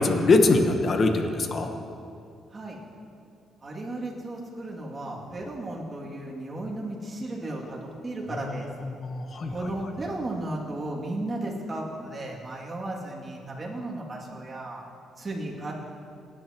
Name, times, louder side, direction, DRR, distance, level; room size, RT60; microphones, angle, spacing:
voice 1, 0.0-1.7 9.0-9.5, left 3 dB, 45° left, 5 dB, 1.1 m, -22 dB
voice 2, 3.6-8.7 9.5-14.8 15.2-15.7, right 2 dB, 30° right, -4 dB, 2.6 m, -34 dB
18.5 x 10.0 x 3.1 m, 2.4 s
cardioid pair, 90°, 0 cm